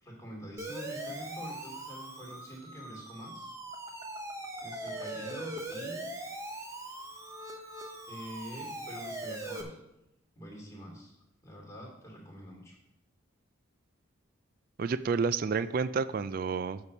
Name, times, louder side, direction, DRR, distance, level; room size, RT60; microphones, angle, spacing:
voice 1, 0.0-3.5 4.6-6.0 8.1-9.8 10.4-11.1 11.4-12.8, equal, 15° left, -2 dB, 2.5 m, -45 dB
Siren, 0.6-9.6, right 1 dB, 15° right, 0.9 m, -41 dB
voice 2, 14.8-16.8, right 5 dB, 45° right, 15 dB, 0.3 m, -30 dB
8.2 x 6.9 x 5.2 m, 0.86 s
head